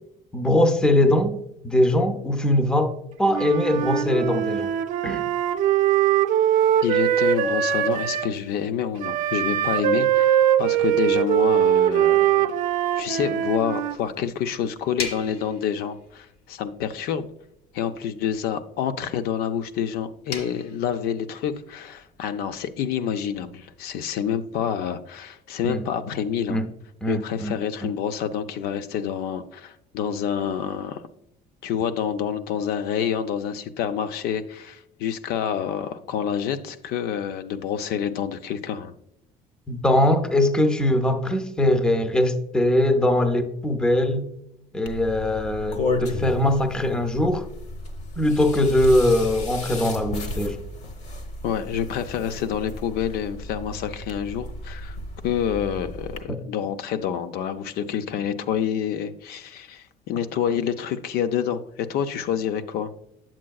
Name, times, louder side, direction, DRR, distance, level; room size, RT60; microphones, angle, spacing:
voice 1, 0.3-1.4 1.6-2.9 3.2-4.7 5.0-5.2 25.6-25.8 26.5-26.7 27.0-27.5 27.8-27.9 39.7-44.3 44.7-47.5 48.2-50.6, left 1 dB, 5° left, 8 dB, 0.4 m, -21 dB
Wind instrument woodwind instrument, 3.3-8.3 9.0-14.0, right 10 dB, 55° right, 0.5 m, -21 dB
voice 2, 6.8-12.5 13.0-17.3 17.7-26.6 27.1-31.0 31.6-38.9 51.4-55.0 55.2-62.9, left 8 dB, 70° left, 10 dB, 0.5 m, -28 dB
sound 1, 13.4-24.6, left 4 dB, 90° left, 1.4 m, -43 dB
sound 2, 44.9-56.2, left 2 dB, 45° left, 0.9 m, -34 dB
8.5 x 7.4 x 2.3 m, 0.78 s
cardioid pair, 160°, 17 cm